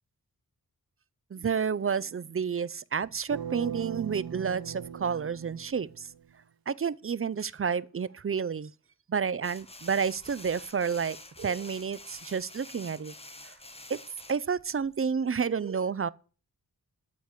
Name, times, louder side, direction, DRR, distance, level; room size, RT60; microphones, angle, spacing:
voice 1, 1.3-6.1 6.7-8.7 9.1-13.1 13.9-14.0 14.3-16.1, right 6 dB, 35° right, 0.5 m, -30 dB
sound 1, 3.3-6.3, right 8 dB, 65° right, 0.8 m, -39 dB
sound 2, 9.4-15.0, left 2 dB, 15° left, 1.2 m, -48 dB
12.5 x 4.7 x 8.4 m
wide cardioid pair, 80°, 38 cm